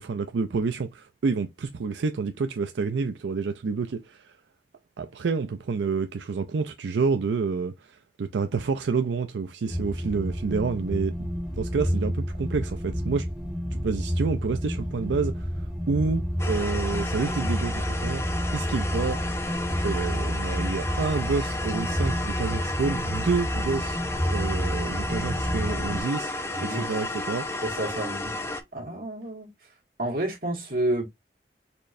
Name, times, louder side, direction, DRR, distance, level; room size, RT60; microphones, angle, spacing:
voice 1, 0.0-4.3 5.0-11.1 11.6-13.3 13.8-18.2 18.5-19.2 19.8-24.0 24.3-26.3 26.6-27.5, right 4 dB, 90° right, 0.4 m, -28 dB
sound 1, 9.7-26.0, equal, ahead, 1.0 m, -29 dB
sound 2, 16.4-28.6, left 2 dB, 15° left, 0.5 m, -33 dB
voice 2, 26.5-26.9 27.6-28.3 28.7-29.5 30.0-31.1, right 1 dB, 55° right, 1.8 m, -29 dB
4.4 x 3.1 x 2.5 m
head